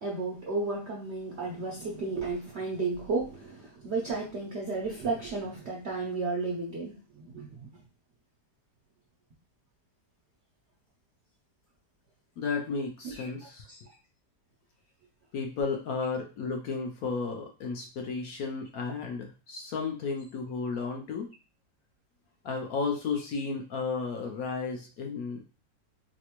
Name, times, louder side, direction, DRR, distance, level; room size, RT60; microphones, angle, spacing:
voice 1, 0.0-7.6 13.0-13.3 13.7-13.8, right 3 dB, 65° right, -2 dB, 0.6 m, -33 dB
voice 2, 12.4-13.7 15.3-21.3 22.4-25.4, left 4 dB, 70° left, 2 dB, 0.9 m, -33 dB
4.1 x 2.1 x 2.9 m, 0.32 s
omnidirectional pair, 1.9 m